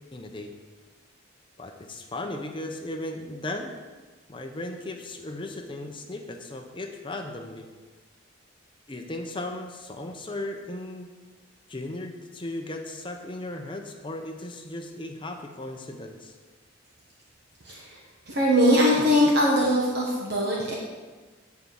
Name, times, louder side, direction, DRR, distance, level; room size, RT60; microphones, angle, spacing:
voice 1, 0.1-0.5 1.6-3.7 4.3-7.7 8.9-11.1 11.7-16.3, left 1 dB, 25° left, 4 dB, 0.7 m, -36 dB
voice 2, 17.6-18.0 18.3-20.7, equal, 55° right, -4 dB, 1.4 m, -21 dB
10.0 x 4.7 x 7.0 m, 1.4 s
head